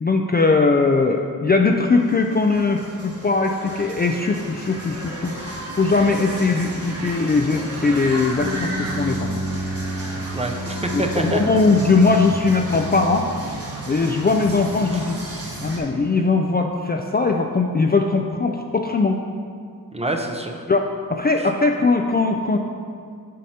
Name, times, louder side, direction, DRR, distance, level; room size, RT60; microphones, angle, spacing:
voice 1, 0.0-5.3 5.8-9.4 10.9-13.2 13.9-15.2 15.6-19.2 20.7-22.6, left 3 dB, 25° left, 2 dB, 0.4 m, -20 dB
sound 1, 2.0-15.8, right 1 dB, 40° right, 1.3 m, -34 dB
sound 2, 8.3-13.6, right 1 dB, 90° left, 1.5 m, -30 dB
voice 2, 10.3-11.7 19.9-20.6 21.4-21.5, right 1 dB, 15° right, 3 dB, 0.6 m, -26 dB
7.3 x 5.2 x 2.8 m, 2.2 s
cardioid pair, 45°, 37 cm